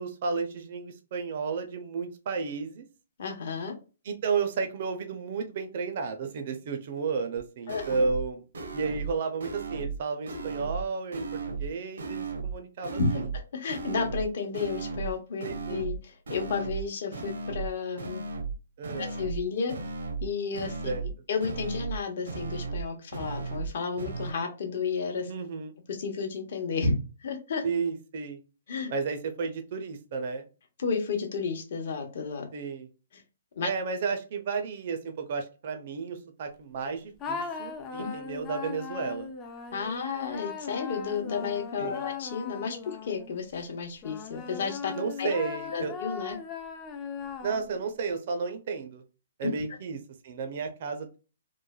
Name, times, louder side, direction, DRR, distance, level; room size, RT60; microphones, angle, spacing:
voice 1, 0.0-2.9 4.0-8.4 8.7-13.3 15.4-15.8 18.8-19.1 20.8-21.0 25.3-25.7 27.6-28.4 28.9-30.5 32.5-32.9 33.6-39.3 41.8-42.1 44.9-45.9 47.4-49.0 49.4-51.2, right 5 dB, 45° right, 6 dB, 0.4 m, -32 dB
voice 2, 3.2-3.8 7.7-7.9 13.0-13.1 13.5-18.2 19.0-19.7 20.2-20.9 21.3-25.3 25.9-26.9 27.2-27.6 28.7-28.9 30.8-32.5 33.1-33.2 33.6-33.7 38.0-38.1 39.7-44.9 45.2-45.3 45.7-46.4 49.4-49.5, left 5 dB, 55° left, 4 dB, 0.8 m, -32 dB
sound 1, 7.4-7.5 7.7-8.3 8.5-9.1 9.4-10.0 10.3-10.8 11.1-11.7 12.0-12.5 12.8-13.4 13.7-14.3 14.5-15.1 15.4-16.0 16.3-16.8 17.1-17.7 18.0-18.5 18.8-19.4 19.7-20.3 20.5-21.1 21.4-22.0 22.3-22.8 23.1-23.7 24.0-24.3, right 4 dB, 80° right, 0.7 m, -35 dB
sound 2, 37.2-43.4 44.0-47.9, left 5 dB, 20° left, 0.4 m, -38 dB
3.0 x 2.1 x 2.2 m, 0.33 s
hypercardioid pair, 160°, 0 cm